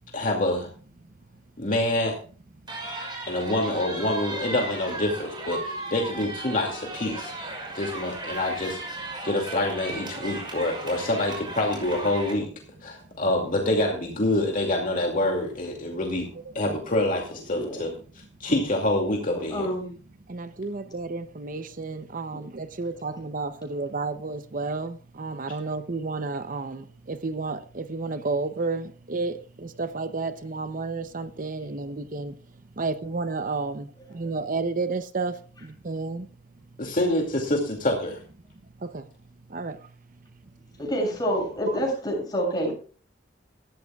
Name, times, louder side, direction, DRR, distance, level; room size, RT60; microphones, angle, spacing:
voice 1, 0.1-0.7 1.6-2.2 3.3-7.3 7.7-12.5 12.8-16.3 16.5-17.9 18.4-19.7 36.8-38.2, left 1 dB, 45° left, 2.4 m, -26 dB
sound 1, 2.7-12.3, right 2 dB, 25° right, 5.7 m, -36 dB
voice 2, 17.5-17.8 19.3-19.9 40.8-42.7, equal, 20° left, 7.6 m, -27 dB
voice 3, 20.3-36.3 38.8-40.4 41.7-41.8, right 3 dB, 45° right, 0.7 m, -32 dB
19.0 x 13.5 x 2.4 m
head